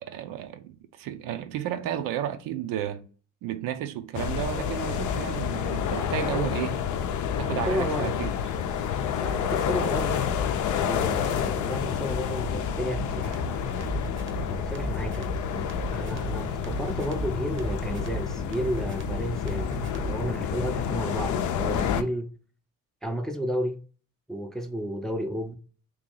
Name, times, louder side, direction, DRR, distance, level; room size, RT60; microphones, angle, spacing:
voice 1, 0.0-3.0 3.4-7.1 7.4-8.8, right 11 dB, 80° right, 0.6 m, -33 dB
sound 1, 4.1-22.0, left 8 dB, 60° left, 0.5 m, -29 dB
voice 2, 7.7-8.2 9.2-10.3 10.8-13.9 14.5-22.3 23.0-23.8 24.3-25.6, equal, ahead, 0.5 m, -32 dB
sound 2, 12.9-20.4, right 4 dB, 35° right, 0.7 m, -38 dB
3.0 x 2.8 x 3.8 m
cardioid pair, 100°, 33 cm